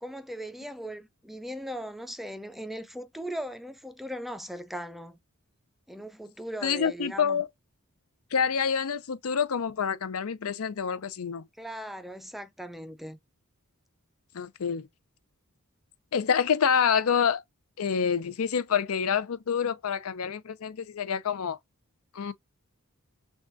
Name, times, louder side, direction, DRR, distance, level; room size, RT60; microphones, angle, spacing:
voice 1, 0.0-5.2 5.9-7.4 11.6-13.2, equal, ahead, 0.4 m, -38 dB
voice 2, 6.6-7.5 8.3-11.4 14.3-14.9 16.1-17.4 17.8-21.6 22.1-22.3, left 7 dB, 70° left, 0.5 m, -27 dB
6.2 x 2.3 x 2.5 m
head